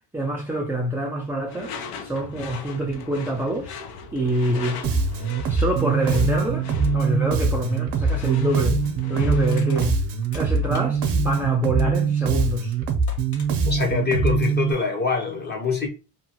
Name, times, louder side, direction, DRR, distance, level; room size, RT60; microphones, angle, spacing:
voice 1, 0.1-3.7 4.1-4.8 5.5-6.7 6.9-8.8 9.1-10.0 10.3-12.7, right 1 dB, 5° right, 0.3 m, -26 dB
Door / Screech, 1.5-9.7, left 6 dB, 65° left, 0.6 m, -39 dB
Bass guitar, 4.8-14.7, right 5 dB, 75° right, 0.7 m, -23 dB
Crushing, 9.4-11.4 12.6-12.7 13.1-13.5, left 3 dB, 45° left, 1.4 m, -44 dB
voice 2, 13.7-15.9, left 5 dB, 25° left, 0.7 m, -24 dB
2.8 x 2.3 x 2.8 m
cardioid pair, 125°, 41 cm